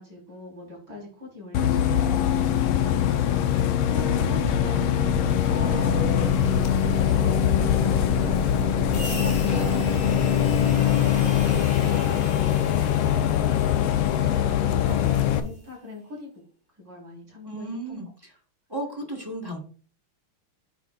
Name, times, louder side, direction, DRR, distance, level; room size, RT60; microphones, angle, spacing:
voice 1, 0.0-8.3 8.8-16.3 16.8-18.0, left 2 dB, 55° right, -3 dB, 4.7 m, -42 dB
Bus, 1.5-15.4, left 10 dB, 80° left, 1.5 m, -22 dB
sound 1, 4.0-11.6, right 9 dB, 75° right, 0.9 m, -35 dB
sound 2, 5.2-15.3, left 2 dB, 55° left, 2.5 m, -39 dB
voice 2, 5.5-6.0 17.4-18.3 18.7-19.6, right 1 dB, 15° right, 0 dB, 1.0 m, -35 dB
9.4 x 6.3 x 2.4 m, 0.41 s
omnidirectional pair, 2.3 m